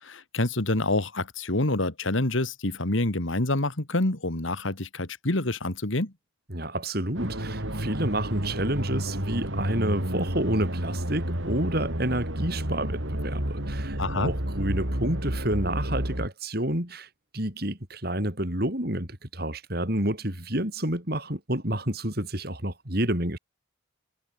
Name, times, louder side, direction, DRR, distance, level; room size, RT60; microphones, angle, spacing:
voice 1, 0.0-6.1 14.0-14.3, left 2 dB, 75° left, 2.3 m, -27 dB
voice 2, 6.5-17.1 17.3-23.4, right 1 dB, 50° right, 5.3 m, -29 dB
sound 1, 7.1-16.3, right 1 dB, 70° right, 5.0 m, -30 dB
head